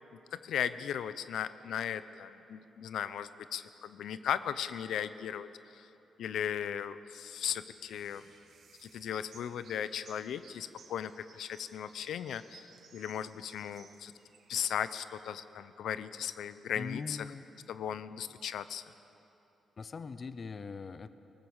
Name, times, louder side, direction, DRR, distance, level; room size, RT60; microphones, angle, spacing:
voice 1, 0.4-5.9 6.2-8.2 8.8-14.1 14.5-17.2 17.7-18.8, left 9 dB, 75° left, 13 dB, 0.7 m, -37 dB
sound 1, 7.7-15.2, right 5 dB, 55° right, 1.9 m, -60 dB
voice 2, 16.8-17.4 19.8-21.1, left 4 dB, 30° left, 12 dB, 0.7 m, -41 dB
24.5 x 19.0 x 7.2 m, 2.9 s
wide cardioid pair, 165°, 0 cm